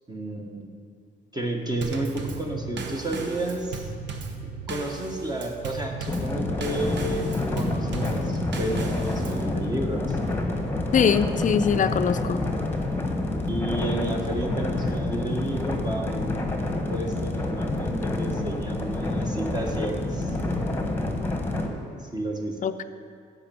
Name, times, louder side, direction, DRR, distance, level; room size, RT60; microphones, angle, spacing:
voice 1, 0.1-0.7 1.3-3.9 4.4-10.2 13.5-20.4 22.0-22.6, right 1 dB, 20° right, 1 dB, 1.3 m, -31 dB
Drum kit / Snare drum / Bass drum, 1.8-9.5, right 4 dB, 65° right, 1.0 m, -36 dB
sound 1, 6.1-21.7, left 2 dB, 10° left, 1.3 m, -28 dB
voice 2, 10.9-12.4 22.6-22.8, left 7 dB, 40° left, 11 dB, 0.5 m, -22 dB
10.0 x 5.4 x 7.5 m, 2.4 s
cardioid pair, 90°, 20 cm